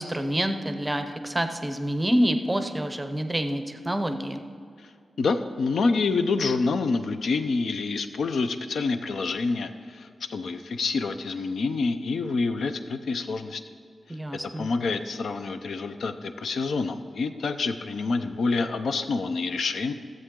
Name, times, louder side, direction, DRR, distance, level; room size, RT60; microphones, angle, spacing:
voice 1, 0.0-4.4 14.1-14.7, equal, 10° right, 7 dB, 0.6 m, -27 dB
voice 2, 5.2-13.6 14.6-19.9, left 4 dB, 75° left, 9 dB, 0.6 m, -27 dB
14.0 x 7.8 x 3.7 m, 2.3 s
wide cardioid pair, 150°, 0 cm